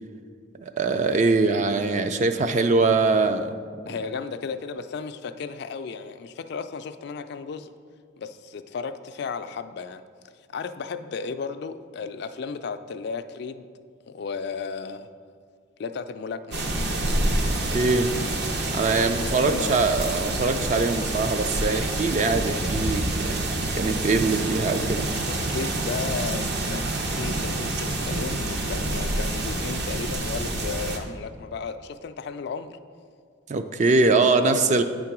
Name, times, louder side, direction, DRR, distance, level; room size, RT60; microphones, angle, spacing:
voice 1, 0.6-3.5 17.4-18.1 18.7-23.4 23.8-25.1 33.5-34.8, right 3 dB, 40° right, 8 dB, 0.4 m, -23 dB
voice 2, 3.9-7.7 8.2-10.0 10.5-13.7 14.1-15.1 15.8-16.6 18.9-19.8 25.3-32.8 34.2-34.8, left 5 dB, 60° left, 10 dB, 0.3 m, -34 dB
sound 1, 16.5-31.0, right 2 dB, 60° right, 0.8 m, -27 dB
9.1 x 3.8 x 5.9 m, 2.1 s
head